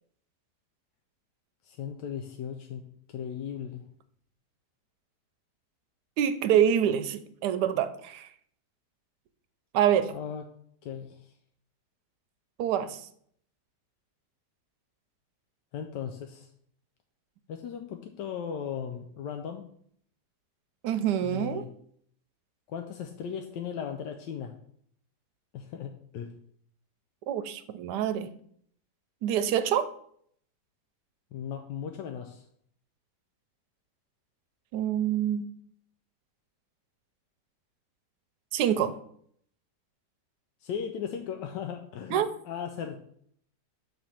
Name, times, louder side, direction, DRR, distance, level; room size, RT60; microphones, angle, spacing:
voice 1, 1.6-2.8 3.1-3.8 10.1-10.5 10.8-11.3 15.7-16.5 17.5-19.7 21.2-21.7 22.7-24.5 25.5-26.3 31.3-32.4 40.6-43.0, left 8 dB, 85° left, 5 dB, 1.3 m, -37 dB
voice 2, 6.2-8.3 9.7-10.1 12.6-13.0 20.8-21.6 27.3-28.3 29.2-29.9 34.7-35.5 38.5-39.0 42.1-42.3, right 9 dB, 75° right, 10 dB, 1.2 m, -26 dB
6.3 x 3.4 x 5.7 m, 0.64 s
omnidirectional pair, 1.9 m